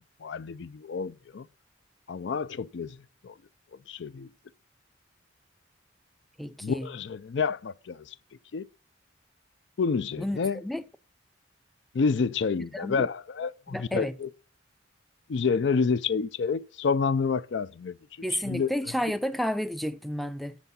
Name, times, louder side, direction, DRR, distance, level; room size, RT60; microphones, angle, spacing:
voice 1, 0.2-1.5 2.1-3.0 3.2-3.3 3.9-4.3 6.6-8.1 8.5-8.7 9.8-10.6 11.9-14.3 15.3-17.9 18.3-18.7, left 5 dB, 65° left, 0.4 m, -28 dB
voice 2, 6.4-6.9 10.2-10.8 12.7-13.1 13.7-14.1 18.2-20.6, equal, ahead, 0.5 m, -31 dB
8.0 x 7.1 x 5.4 m
head